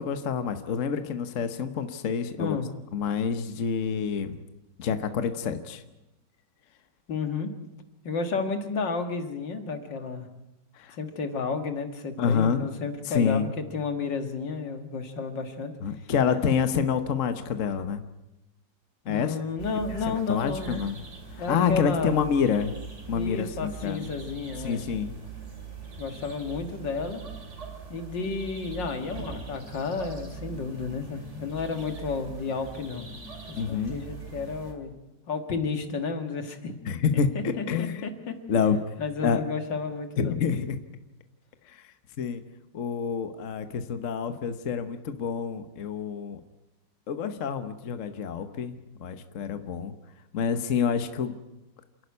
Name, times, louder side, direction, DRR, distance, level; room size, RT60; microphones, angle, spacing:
voice 1, 0.0-2.6 2.9-4.4 4.8-5.8 10.8-11.0 12.2-12.7 13.1-13.5 15.8-18.0 19.1-19.4 20.1-21.0 21.4-22.8 23.1-24.1 24.6-25.2 33.6-34.0 36.9-38.0 38.5-38.9 39.2-39.4 40.2-40.8 41.7-41.8 42.2-42.4 42.7-46.4 47.1-49.9 50.3-51.3, left 6 dB, 50° left, 9 dB, 1.3 m, -27 dB
voice 2, 7.1-7.5 8.0-10.3 10.9-15.7 19.1-20.8 21.4-22.2 23.1-24.8 26.0-27.2 27.9-33.1 33.5-34.9 35.3-36.7 37.1-38.4 39.0-40.4, left 4 dB, 80° left, 7 dB, 2.4 m, -32 dB
sound 1, 19.6-34.7, right 5 dB, 40° right, 3.1 m, -42 dB
28.0 x 11.5 x 9.6 m, 0.96 s
omnidirectional pair, 1.9 m